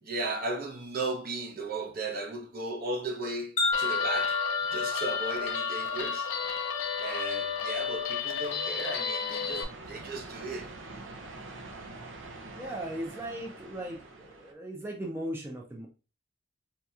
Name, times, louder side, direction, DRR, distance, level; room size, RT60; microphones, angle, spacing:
voice 1, 0.0-4.4 4.7-6.3 7.0-10.7, right 2 dB, 50° right, 0.8 m, -36 dB
Wind chime, 3.6-7.9, left 4 dB, 35° left, 0.7 m, -32 dB
Guitar, 3.7-9.6, left 7 dB, 85° left, 0.5 m, -33 dB
sound 1, 9.4-14.5, right 2 dB, 80° right, 0.7 m, -45 dB
voice 2, 12.5-15.9, right 1 dB, 10° right, 0.5 m, -38 dB
4.2 x 2.8 x 2.3 m
head